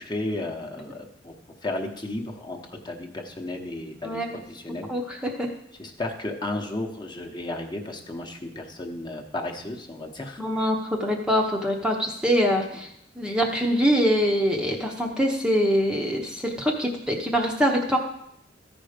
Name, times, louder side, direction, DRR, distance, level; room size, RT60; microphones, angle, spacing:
voice 1, 0.0-1.3 1.6-4.9 5.8-10.4, left 2 dB, 25° left, 1 dB, 1.0 m, -33 dB
voice 2, 4.0-4.4 4.9-5.5 10.4-12.9 13.2-18.0, equal, 5° right, 0 dB, 0.8 m, -24 dB
14.0 x 5.2 x 5.1 m, 0.77 s
head